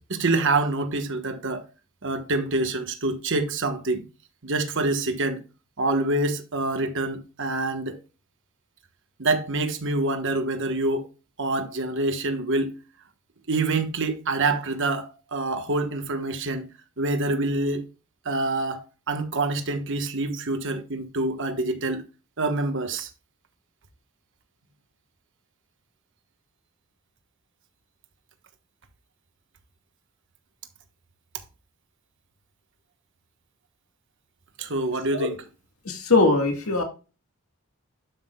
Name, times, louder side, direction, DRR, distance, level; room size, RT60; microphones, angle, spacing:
voice 1, 0.1-1.7 2.0-4.0 4.4-5.4 5.8-8.0 9.2-11.1 11.4-12.8 13.5-16.7 17.0-17.8 18.2-22.0 22.4-23.1 34.6-35.4, right 2 dB, 60° right, 1.4 m, -26 dB
voice 2, 35.9-36.8, left 3 dB, 75° left, 2.0 m, -21 dB
12.0 x 6.0 x 2.4 m
head